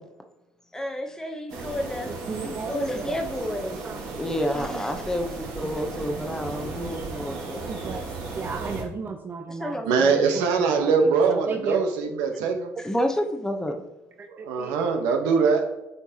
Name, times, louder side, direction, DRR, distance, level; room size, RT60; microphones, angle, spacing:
voice 1, 0.7-2.1 2.4-3.9 4.2-7.7 9.5-10.1 12.8-13.8, equal, 10° left, 4 dB, 0.8 m, -29 dB
sound 1, 1.5-8.8, right 3 dB, 70° right, 2.3 m, -35 dB
voice 2, 2.1-3.2 3.8-4.0 4.5-4.9 5.6-6.0 6.5-6.6 7.7-8.0 8.4-11.8 14.2-14.9, right 4 dB, 30° right, 6 dB, 0.5 m, -35 dB
voice 3, 9.8-12.7 14.3-15.6, right 5 dB, 85° right, 4 dB, 1.0 m, -22 dB
8.3 x 4.5 x 2.8 m, 0.99 s
supercardioid pair, 95°, 7 cm